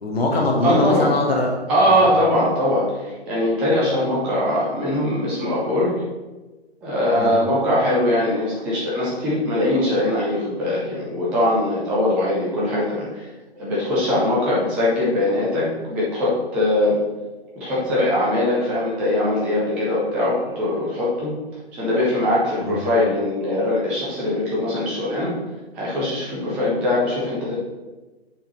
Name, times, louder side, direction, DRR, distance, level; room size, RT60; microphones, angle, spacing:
voice 1, 0.0-1.5 1.8-2.0 7.2-7.3 22.6-22.8, left 2 dB, 65° left, 1 dB, 1.4 m, -21 dB
voice 2, 0.6-1.1 1.7-5.9 6.8-13.3 13.5-17.0 17.6-21.3 21.7-25.3 25.7-27.5, left 1 dB, 5° right, -6 dB, 0.4 m, -21 dB
7.6 x 4.3 x 4.2 m, 1.2 s
figure-of-eight pair, 125°, 32 cm